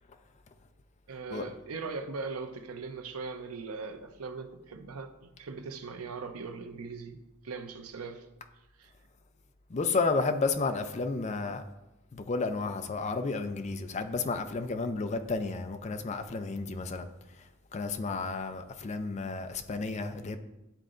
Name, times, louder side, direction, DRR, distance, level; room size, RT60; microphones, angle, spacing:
voice 1, 1.1-8.3 8.8-8.9, right 4 dB, 90° right, 0.7 m, -40 dB
voice 2, 9.7-11.6 12.1-17.1 17.7-20.4, left 3 dB, 30° left, 0.4 m, -32 dB
11.5 x 3.8 x 2.5 m
head